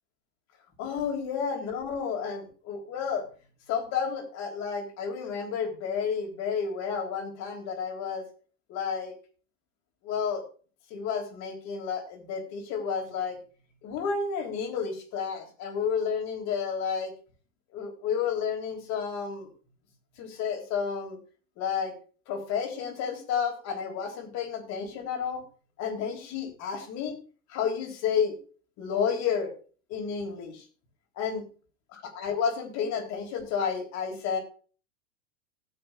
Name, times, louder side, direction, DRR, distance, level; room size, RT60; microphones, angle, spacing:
voice 1, 0.8-3.3 3.7-8.3 8.7-9.1 10.0-10.4 10.9-13.4 13.8-17.1 17.7-19.5 20.2-21.2 21.6-21.9 22.3-25.4 25.8-27.2 27.5-28.3 28.8-29.5 29.9-30.7 31.2-31.5 31.9-34.4, left 6 dB, 40° left, 3 dB, 3.5 m, -31 dB
18.0 x 7.8 x 2.4 m, 0.38 s
hypercardioid pair, 100°, 41 cm